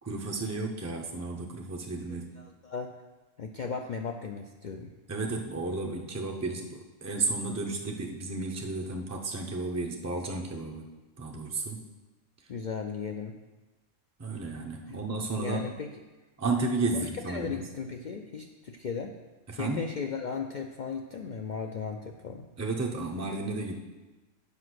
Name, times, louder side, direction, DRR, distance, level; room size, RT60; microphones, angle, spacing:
voice 1, 0.0-2.3 5.1-10.9 11.2-11.9 14.2-15.7 16.4-17.6 19.5-19.8 22.6-23.8, right 3 dB, 20° right, 0 dB, 0.4 m, -33 dB
voice 2, 2.4-2.9 3.4-4.9 12.5-13.4 14.9-15.0 15.4-15.9 16.9-19.2 19.6-22.4, left 5 dB, 70° left, 4 dB, 0.4 m, -36 dB
8.3 x 4.9 x 6.2 m, 1.2 s
omnidirectional pair, 1.3 m